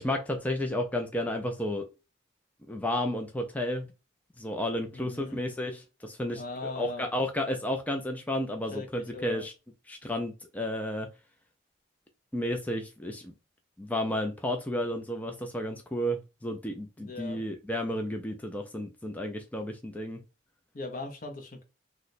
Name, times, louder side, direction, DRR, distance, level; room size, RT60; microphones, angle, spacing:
voice 1, 0.0-1.9 2.7-3.9 4.4-9.5 9.9-11.1 12.3-13.3 13.8-20.2, left 1 dB, 10° left, 0.3 m, -32 dB
voice 2, 4.9-5.4 6.3-7.1 8.7-9.4 17.0-17.4 20.7-21.6, left 3 dB, 40° left, 0.7 m, -39 dB
3.0 x 2.1 x 3.9 m
head